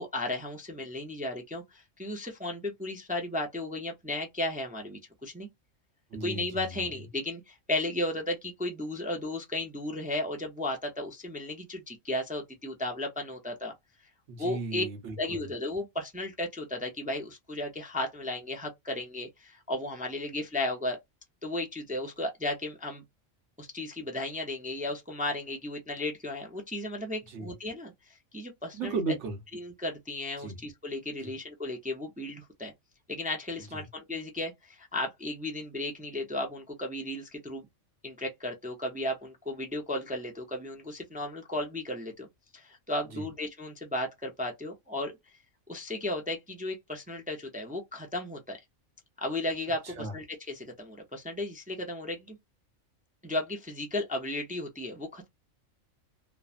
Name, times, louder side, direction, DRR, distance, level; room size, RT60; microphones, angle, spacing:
voice 1, 0.0-5.5 6.2-13.7 14.4-14.8 15.2-21.0 21.4-23.0 23.6-29.0 29.5-32.7 33.1-37.7 38.0-42.3 42.5-45.1 45.7-48.6 49.2-52.4 53.2-55.3, left 1 dB, 15° right, 0.3 m, -35 dB
voice 2, 6.1-6.8 14.3-15.5 27.3-27.5 28.7-29.4 30.4-30.6 31.2-31.3 33.7-33.9 43.1-43.3 49.8-50.1, right 3 dB, 70° right, 1.2 m, -35 dB
3.1 x 2.1 x 2.4 m
omnidirectional pair, 1.3 m